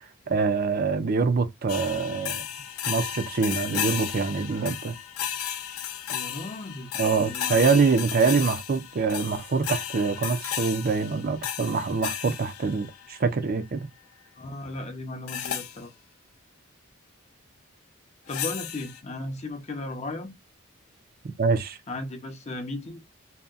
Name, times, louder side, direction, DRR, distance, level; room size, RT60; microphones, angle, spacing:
voice 1, 0.3-2.4 2.9-4.9 7.0-13.8 21.4-21.8, right 4 dB, 45° right, 0.4 m, -25 dB
sound 1, 1.7-13.2 15.3-15.8 18.3-19.0, left 10 dB, 85° left, 0.4 m, -34 dB
voice 2, 6.1-6.9 7.2-7.7 14.4-15.9 18.3-20.3 21.9-23.0, left 2 dB, 30° left, 0.6 m, -36 dB
2.8 x 2.2 x 2.3 m
head